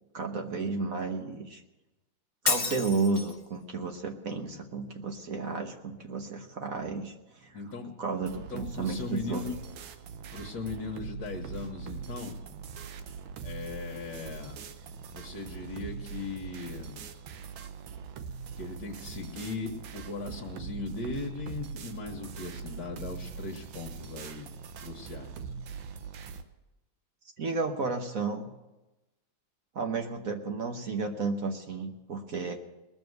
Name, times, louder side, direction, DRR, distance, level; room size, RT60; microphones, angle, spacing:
voice 1, 0.1-1.6 2.4-7.6 8.0-9.4 27.4-28.5 29.7-32.6, right 4 dB, 50° right, 5 dB, 1.3 m, -32 dB
Shatter, 2.5-3.4, left 4 dB, 30° left, 1.0 m, -30 dB
voice 2, 4.4-4.7 7.5-7.9 8.4-9.6 10.3-12.4 13.4-14.6 15.1-17.1 18.6-24.5 24.8-25.4, left 4 dB, 60° left, -1 dB, 1.9 m, -38 dB
sound 1, 8.2-26.4, right 6 dB, 80° right, 1.7 m, -42 dB
20.0 x 7.0 x 7.9 m, 1.0 s
omnidirectional pair, 2.2 m